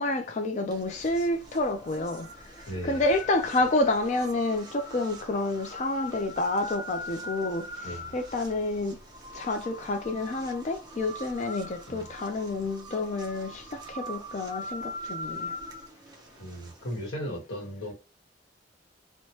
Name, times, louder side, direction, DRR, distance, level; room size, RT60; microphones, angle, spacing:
voice 1, 0.0-2.3 2.8-9.0 9.3-15.6, left 2 dB, 40° left, 0.4 m, -29 dB
sound 1, 0.7-17.1, left 1 dB, 20° right, 0.6 m, -42 dB
voice 2, 2.7-3.0 7.8-8.2 11.9-12.1 16.4-17.9, equal, 90° left, 1.1 m, -36 dB
3.1 x 2.1 x 2.8 m
head